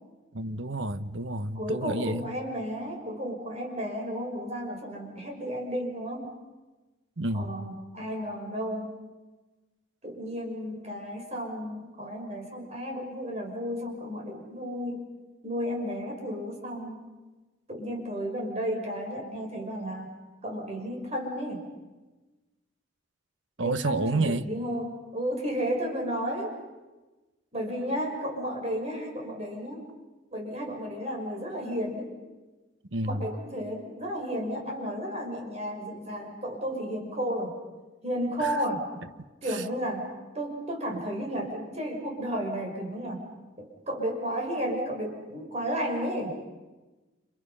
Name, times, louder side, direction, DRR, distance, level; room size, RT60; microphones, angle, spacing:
voice 1, 0.3-2.3 7.2-7.5 23.6-24.5 32.9-33.3 38.4-38.6 39.5-39.6, right 2 dB, 75° right, 11 dB, 1.2 m, -30 dB
voice 2, 1.6-6.3 7.3-9.0 10.0-15.1 15.4-17.1 17.7-20.1 20.4-21.7 23.6-26.6 27.5-29.9 30.3-32.1 33.0-37.6 38.0-38.9 39.4-40.1 40.3-43.3 43.6-46.3, equal, 35° right, 1 dB, 5.8 m, -33 dB
29.5 x 29.5 x 5.6 m, 1.2 s
head